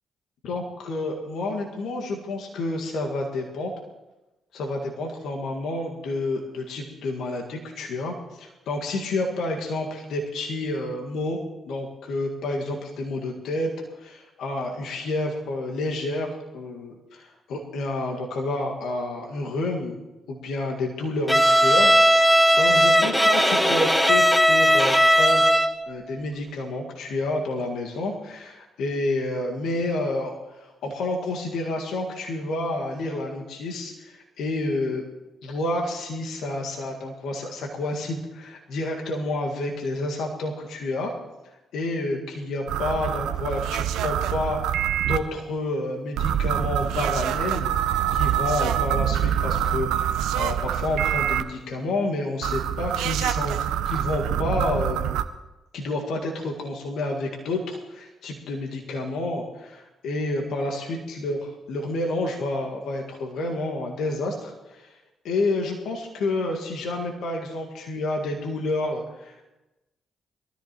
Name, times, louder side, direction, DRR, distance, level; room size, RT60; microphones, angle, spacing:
voice 1, 0.4-3.7 4.5-11.4 11.7-20.0 20.3-21.9 22.2-25.5 25.9-35.0 35.4-41.1 41.7-44.8 45.1-55.1 55.7-61.4 61.7-65.0 65.2-69.5, left 2 dB, 65° left, 0 dB, 1.8 m, -29 dB
Bowed string instrument, 21.3-25.8, equal, 10° left, 1.4 m, -18 dB
sound 1, 42.7-45.2 46.2-51.4 52.4-55.2, right 10 dB, 70° right, 0.6 m, -25 dB
22.5 x 13.5 x 3.0 m, 1.0 s
hypercardioid pair, 45°, 0 cm